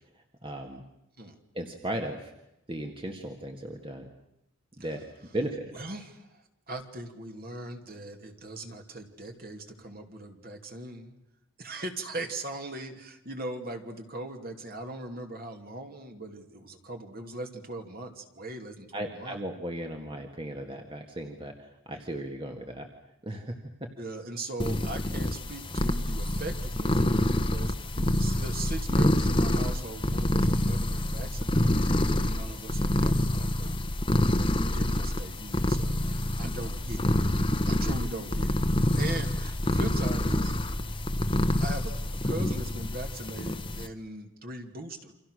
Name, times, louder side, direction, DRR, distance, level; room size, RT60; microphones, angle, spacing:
voice 1, 0.1-0.8 1.5-2.3 2.7-4.1 4.8-5.1 5.3-5.7 18.9-22.9 23.2-23.6 28.0-28.2 36.4-36.5 38.9-39.1, right 1 dB, 25° right, 3 dB, 1.9 m, -36 dB
voice 2, 5.7-11.1 11.6-19.4 24.0-33.8 34.4-37.1 37.6-38.6 39.0-40.5 41.5-45.1, right 2 dB, 45° right, 5 dB, 2.7 m, -40 dB
sound 1, 24.6-43.9, left 1 dB, 20° left, 1.1 m, -27 dB
29.0 x 26.5 x 6.5 m, 0.85 s
head